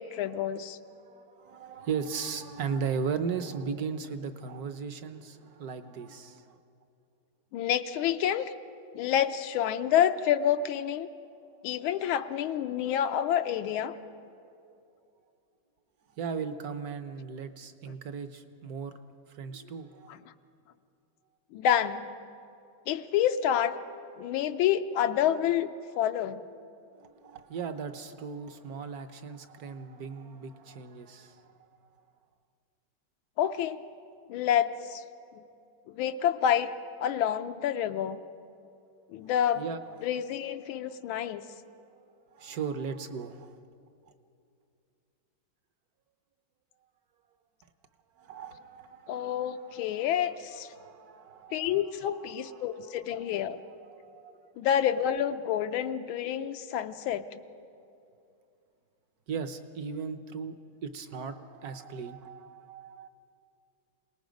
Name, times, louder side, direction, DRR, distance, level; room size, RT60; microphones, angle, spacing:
voice 1, 0.0-0.8 7.5-8.5 8.9-11.1 11.6-13.9 21.5-22.0 22.9-23.8 24.2-26.4 33.4-33.8 34.3-35.0 35.3-35.4 35.9-36.7 37.0-38.2 39.1-39.7 40.0-41.5 49.1-50.7 51.5-53.6 54.6-57.2, left 10 dB, 85° left, 9 dB, 1.5 m, -28 dB
voice 2, 1.0-6.6 16.1-19.0 19.3-20.2 26.9-31.7 39.5-40.1 42.3-43.6 48.2-50.2 50.7-51.8 52.1-54.5 59.3-60.6 60.8-63.1, right 6 dB, 60° right, 10 dB, 1.1 m, -37 dB
27.0 x 19.0 x 5.2 m, 2.5 s
omnidirectional pair, 2.2 m